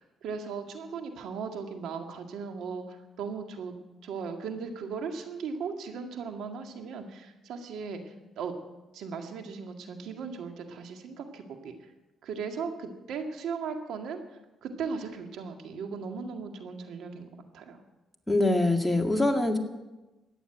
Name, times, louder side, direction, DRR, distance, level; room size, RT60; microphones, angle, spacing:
voice 1, 0.0-3.7 4.0-8.5 8.9-11.7 12.2-14.2 14.6-17.8, right 5 dB, 80° right, 4 dB, 2.0 m, -37 dB
voice 2, 18.3-19.6, left 2 dB, 5° left, 2 dB, 2.1 m, -24 dB
14.0 x 9.9 x 8.9 m, 1.1 s
cardioid pair, 90°, 0 cm